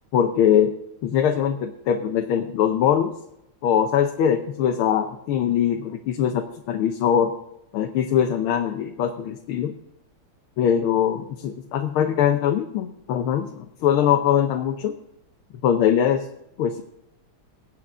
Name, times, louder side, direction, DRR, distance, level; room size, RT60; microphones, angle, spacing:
voice 1, 0.1-0.7 1.0-3.1 3.6-7.3 7.7-9.7 10.6-14.9 15.6-16.3 16.6-16.8, left 9 dB, 90° left, 5 dB, 1.6 m, -22 dB
21.0 x 8.2 x 3.6 m, 0.83 s
omnidirectional pair, 2.3 m